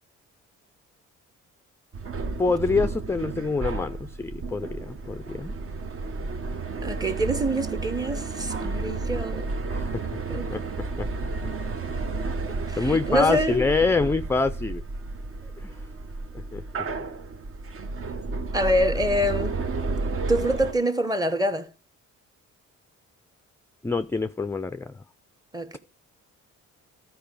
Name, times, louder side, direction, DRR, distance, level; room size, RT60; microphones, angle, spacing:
sound 1, 1.9-20.7, right 3 dB, 45° right, 1.0 m, -32 dB
voice 1, 2.4-5.5 8.6-8.7 9.7-10.1 10.3-11.1 12.8-14.8 15.6-15.8 16.3-16.9 23.8-24.9, left 4 dB, 10° left, 0.4 m, -26 dB
voice 2, 6.8-9.4 10.3-10.5 12.7-13.6 18.5-19.6 20.3-21.7 25.5-25.8, equal, 10° right, 1.0 m, -25 dB
12.0 x 4.8 x 5.2 m
cardioid pair, 90°, 30 cm